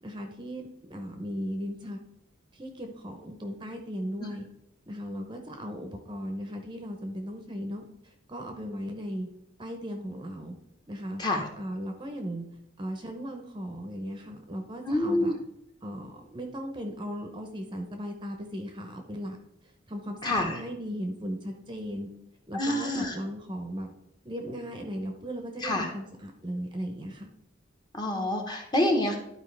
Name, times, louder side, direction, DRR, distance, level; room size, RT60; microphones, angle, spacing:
voice 1, 0.0-2.0 2.5-4.5 4.9-9.3 9.6-10.6 10.9-11.2 11.6-12.5 12.8-15.3 15.8-19.4 19.9-22.1 22.5-23.9 24.2-27.3, equal, 25° right, 4 dB, 0.7 m, -37 dB
voice 2, 14.9-15.3 20.2-20.6 22.5-23.1 25.6-25.9 27.9-29.2, left 1 dB, 20° left, 2 dB, 1.0 m, -27 dB
11.5 x 4.7 x 3.3 m, 0.81 s
head